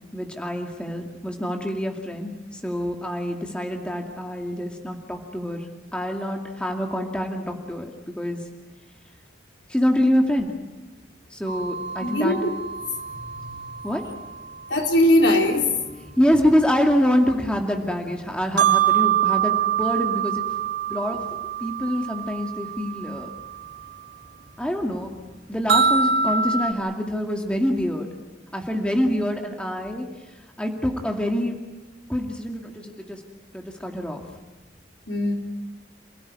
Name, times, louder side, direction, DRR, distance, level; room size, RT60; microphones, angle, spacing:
voice 1, 0.1-5.7 5.9-7.9 8.2-8.4 9.7-10.5 11.3-12.4 13.8-14.0 16.2-20.4 20.9-21.2 21.6-23.3 24.6-25.1 25.5-28.1 28.5-30.1 30.6-31.6 32.1-33.2 33.5-34.2, equal, 5° left, 2 dB, 2.3 m, -25 dB
sound 1, 11.5-15.2 16.1-16.2 18.4-23.9 24.2-24.3 24.8-24.9 25.7-26.7, right 7 dB, 70° right, 4.2 m, -25 dB
voice 2, 12.0-12.5 13.3-13.4 14.7-15.7 35.1-35.3, left 1 dB, 80° left, 2 dB, 4.2 m, -20 dB
28.5 x 17.5 x 9.7 m, 1.1 s
head